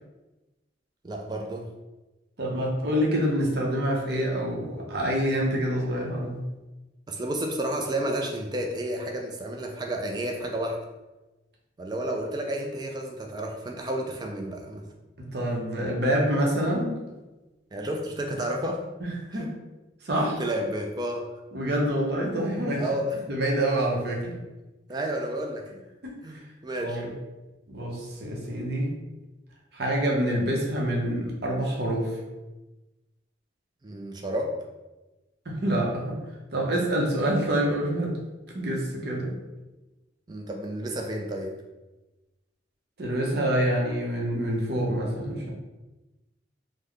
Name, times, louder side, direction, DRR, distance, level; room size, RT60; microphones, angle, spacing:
voice 1, 1.0-1.7 7.1-10.8 11.8-14.9 17.7-18.8 19.3-19.5 20.2-21.3 22.8-23.2 24.9-25.7 26.2-27.0 33.8-34.6 40.3-41.6, right 1 dB, 20° right, 2 dB, 0.3 m, -31 dB
voice 2, 2.4-6.4 15.2-16.9 19.0-19.5 20.0-20.4 21.5-23.0 23.3-24.4 26.0-26.4 26.8-27.1 27.7-29.0 29.7-32.2 35.5-36.2 36.5-38.1 38.5-39.3 43.0-45.5, right 1 dB, 55° right, -2 dB, 0.7 m, -26 dB
3.2 x 2.1 x 3.7 m, 1.1 s
head